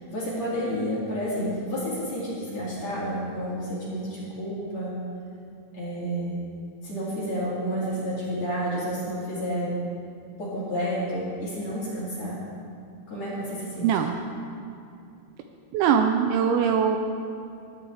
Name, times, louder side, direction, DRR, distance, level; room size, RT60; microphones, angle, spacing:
voice 1, 0.1-5.0 5.7-6.4 6.8-9.8 10.4-12.4 13.1-13.9, equal, 45° left, -9 dB, 2.8 m, -30 dB
voice 2, 13.8-14.1 15.7-17.0, right 7 dB, 85° right, 4 dB, 2.7 m, -21 dB
17.0 x 9.9 x 3.4 m, 2.5 s
omnidirectional pair, 5.6 m